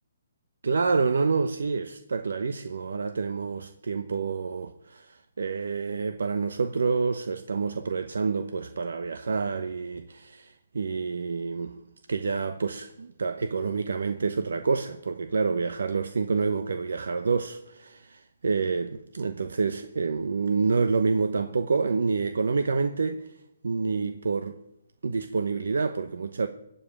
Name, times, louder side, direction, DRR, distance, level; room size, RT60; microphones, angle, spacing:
voice 1, 0.6-11.8 12.1-23.4 23.6-24.6 25.0-26.5, right 4 dB, 80° right, 0.9 m, -28 dB
15.5 x 5.6 x 9.9 m
hypercardioid pair, 155°, 0 cm